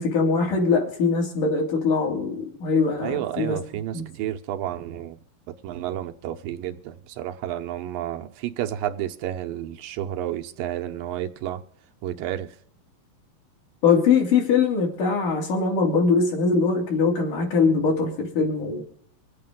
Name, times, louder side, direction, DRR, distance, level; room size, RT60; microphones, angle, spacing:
voice 1, 0.0-3.6 3.9-4.0 13.8-18.8, left 4 dB, 65° left, 4.0 m, -22 dB
voice 2, 3.0-5.2 5.6-11.6 12.0-12.6, right 12 dB, 80° right, 2.5 m, -31 dB
25.5 x 8.6 x 3.7 m
omnidirectional pair, 4.1 m